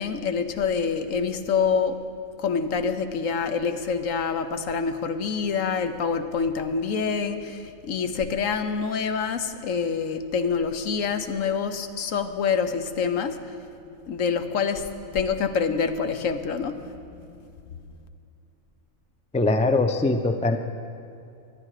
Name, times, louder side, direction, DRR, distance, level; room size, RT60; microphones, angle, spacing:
voice 1, 0.0-2.0 2.4-13.4 14.1-14.8 15.1-16.9, left 6 dB, 75° left, 9 dB, 1.2 m, -26 dB
voice 2, 19.3-20.6, left 2 dB, 10° left, 7 dB, 0.3 m, -22 dB
24.5 x 9.8 x 4.9 m, 2.5 s
omnidirectional pair, 1.4 m